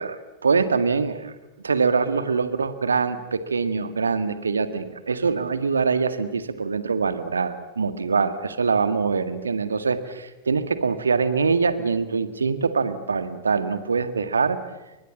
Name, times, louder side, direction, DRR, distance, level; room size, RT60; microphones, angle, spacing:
voice 1, 0.0-1.3 1.6-14.6, right 5 dB, 75° right, 10 dB, 1.9 m, -24 dB
30.0 x 24.5 x 7.4 m, 1.0 s
figure-of-eight pair, 90°, 0 cm